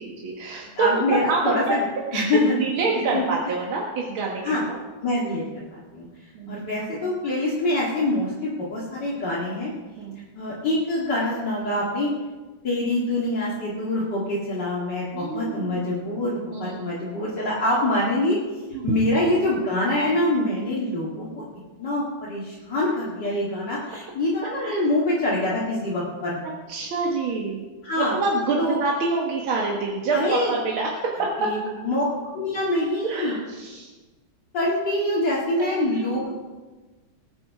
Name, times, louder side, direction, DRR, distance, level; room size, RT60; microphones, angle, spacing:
voice 1, 0.0-1.8 2.1-4.8 6.3-6.7 10.0-10.2 15.1-15.8 16.5-16.9 18.7-19.1 24.4-24.9 26.7-27.6 28.0-31.5 33.0-33.9 35.6-36.2, right 3 dB, 85° right, -2 dB, 2.3 m, -27 dB
voice 2, 0.7-1.8 2.1-2.6 3.1-3.2 4.4-4.6 5.0-6.1 6.5-9.7 10.3-12.1 12.6-18.4 18.8-21.4 21.8-26.4 27.8-28.1 28.6-28.8 30.1-30.5 31.4-31.6 31.8-32.0 32.3-33.4 34.5-36.3, left 1 dB, 60° left, -7 dB, 2.8 m, -25 dB
19.5 x 8.6 x 4.8 m, 1.3 s
omnidirectional pair, 2.2 m